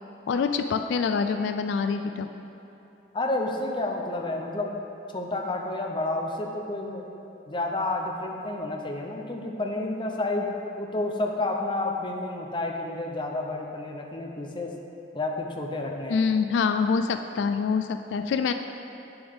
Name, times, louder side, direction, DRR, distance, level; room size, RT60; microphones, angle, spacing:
voice 1, 0.3-2.3 16.1-18.5, left 5 dB, 85° left, 7 dB, 0.3 m, -25 dB
voice 2, 3.1-4.7 5.1-7.1 7.5-14.7 15.1-16.2, left 2 dB, 25° left, 1 dB, 0.6 m, -30 dB
8.7 x 6.8 x 3.6 m, 2.9 s
head